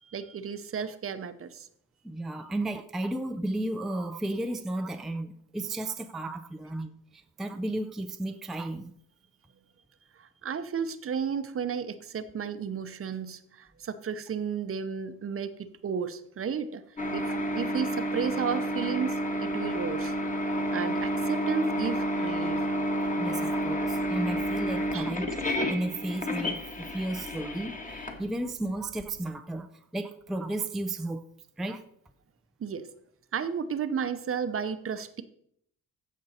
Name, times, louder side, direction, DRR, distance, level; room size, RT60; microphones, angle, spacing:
voice 1, 0.0-1.7 10.1-16.8 17.1-20.2 20.7-22.7 23.5-23.6 24.9-25.1 32.6-32.9 33.3-35.2, right 6 dB, 40° right, 0.7 m, -33 dB
voice 2, 2.0-8.9 23.2-29.7 29.9-31.2 31.6-31.8, right 1 dB, ahead, 0.4 m, -33 dB
sound 1, 17.0-29.0, equal, 20° left, 1.5 m, -30 dB
14.5 x 5.3 x 4.3 m
cardioid pair, 105°, 36 cm